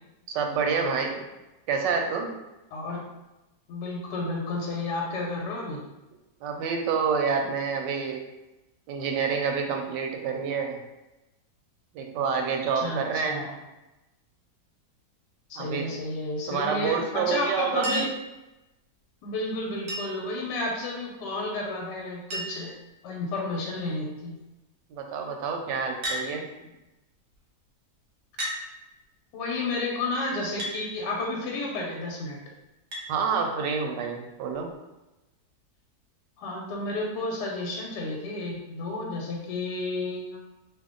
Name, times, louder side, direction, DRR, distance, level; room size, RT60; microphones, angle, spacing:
voice 1, 0.3-1.2 1.7-2.3 6.4-8.2 8.9-10.8 11.9-13.4 15.6-15.8 16.5-17.9 24.9-26.4 33.1-34.7, right 5 dB, 90° right, 3 dB, 1.2 m, -28 dB
voice 2, 2.7-3.0 3.7-5.8 12.7-13.5 15.5-18.1 19.2-22.7 23.0-24.3 29.3-32.4 36.4-40.4, left 2 dB, 85° left, -1 dB, 1.3 m, -31 dB
Chink clink, 17.8-18.3 19.9-20.3 21.7-21.8 22.0-22.1 22.3-22.8 23.5-23.9 26.0-26.3 27.3-27.4 28.4-28.6 30.6-30.8 32.9-33.1 34.5-34.6, right 1 dB, 50° right, 0.9 m, -33 dB
2.7 x 2.5 x 3.6 m, 1.0 s
omnidirectional pair, 1.8 m